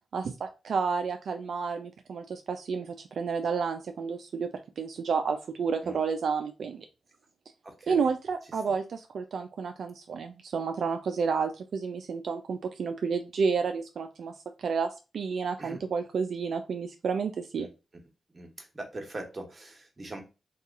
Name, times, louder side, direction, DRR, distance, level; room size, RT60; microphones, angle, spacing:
voice 1, 0.1-4.5 4.8-6.9 7.9-17.7, right 5 dB, 70° right, 6 dB, 0.3 m, -31 dB
voice 2, 7.6-8.1 15.6-15.8 17.6-17.7 18.3-20.2, right 2 dB, 35° right, 3 dB, 1.1 m, -41 dB
2.8 x 2.3 x 3.5 m, 0.30 s
cardioid pair, 55°, 0 cm